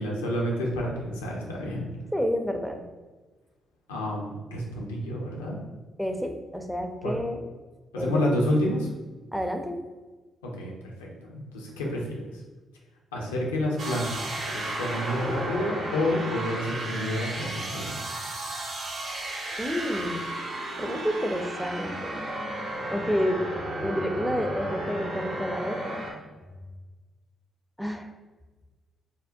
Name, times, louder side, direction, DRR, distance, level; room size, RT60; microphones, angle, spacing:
voice 1, 0.0-1.9 3.9-5.6 7.0-7.2 7.9-8.9 10.4-10.7 11.0-12.2 13.1-18.0, left 1 dB, 80° left, -2 dB, 0.5 m, -29 dB
voice 2, 2.1-2.8 6.0-7.4 8.0-8.3 9.3-9.8 19.6-20.3 20.8-22.2 22.9-23.5 23.8-26.1 27.8-28.1, equal, ahead, 4 dB, 0.5 m, -29 dB
sound 1, 13.8-26.1, right 1 dB, 55° right, 0.7 m, -33 dB
3.6 x 2.1 x 2.5 m, 1.2 s
figure-of-eight pair, 40°, 0 cm